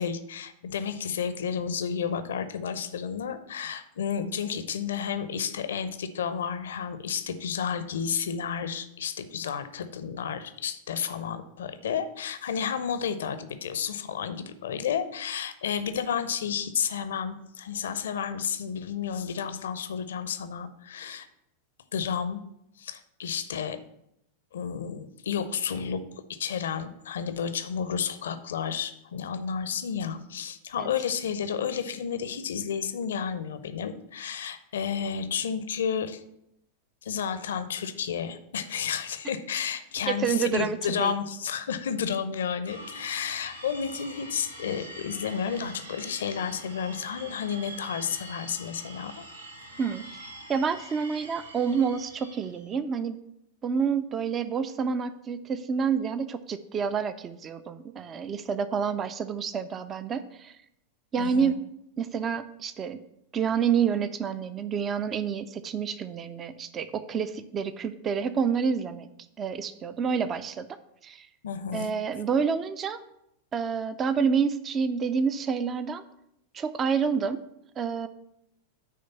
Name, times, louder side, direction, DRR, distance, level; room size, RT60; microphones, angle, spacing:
voice 1, 0.0-21.3 21.9-22.4 22.8-23.8 24.5-26.0 26.3-36.2 37.0-49.3 61.2-61.6 71.4-71.9, left 7 dB, 65° left, 11 dB, 0.5 m, -31 dB
voice 2, 40.1-41.1 49.8-50.0 50.5-53.2 53.6-60.6 61.1-61.6 62.0-63.0 63.3-69.1 69.4-70.7 71.0-71.3 71.7-73.0 73.5-76.0 76.5-77.4 77.8-78.1, right 6 dB, 25° right, 13 dB, 0.4 m, -28 dB
sound 1, 42.7-52.7, right 1 dB, 80° right, 1.1 m, -44 dB
9.3 x 3.3 x 6.8 m, 0.80 s
figure-of-eight pair, 90°, 0 cm